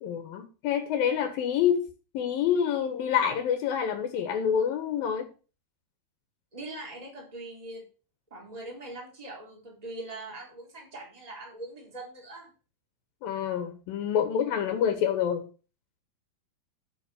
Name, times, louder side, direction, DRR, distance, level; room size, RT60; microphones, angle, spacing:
voice 1, 0.0-1.9 2.1-5.3 13.2-15.5, left 8 dB, 75° left, 3.1 m, -27 dB
voice 2, 6.5-7.8 8.3-12.5, right 2 dB, 10° right, 3.9 m, -42 dB
11.5 x 5.7 x 6.8 m
omnidirectional pair, 4.3 m